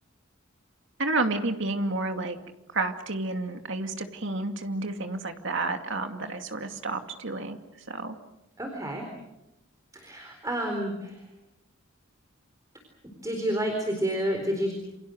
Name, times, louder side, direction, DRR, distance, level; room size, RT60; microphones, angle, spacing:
voice 1, 1.0-2.4 2.7-7.6 7.9-8.1, right 2 dB, 60° right, 5 dB, 2.5 m, -30 dB
voice 2, 8.6-9.0 9.9-11.2 13.2-14.7, right 1 dB, 15° right, 3 dB, 4.1 m, -29 dB
28.5 x 27.0 x 6.5 m, 0.91 s
head